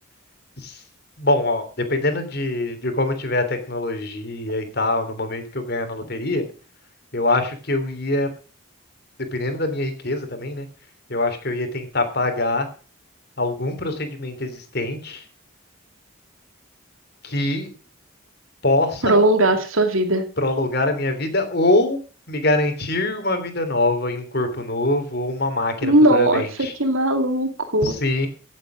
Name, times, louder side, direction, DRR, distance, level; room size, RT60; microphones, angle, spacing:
voice 1, 1.2-6.4 7.1-8.3 9.3-10.7 11.1-12.7 13.4-15.2 17.2-17.7 18.6-19.2 20.4-22.0 22.3-26.7 27.8-28.3, left 2 dB, 50° left, 7 dB, 3.3 m, -23 dB
voice 2, 19.0-20.3 25.8-28.0, right 1 dB, 75° right, 7 dB, 2.6 m, -18 dB
17.0 x 8.1 x 6.3 m, 0.37 s
head